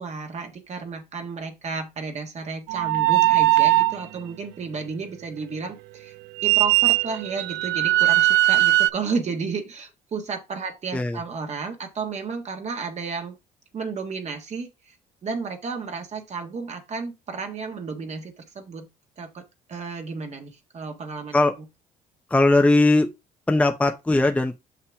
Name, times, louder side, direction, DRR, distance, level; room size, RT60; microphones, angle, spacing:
voice 1, 0.0-6.1 6.4-13.3 13.7-14.9 15.2-18.9 19.2-19.4 19.7-21.3, right 5 dB, 40° right, 1.5 m, -32 dB
sound 1, 2.7-4.0 6.4-8.9, right 17 dB, 85° right, 0.4 m, -19 dB
voice 2, 22.3-23.1 23.5-24.6, left 2 dB, 10° left, 0.7 m, -19 dB
6.6 x 5.8 x 3.5 m
cardioid pair, 110°, 17 cm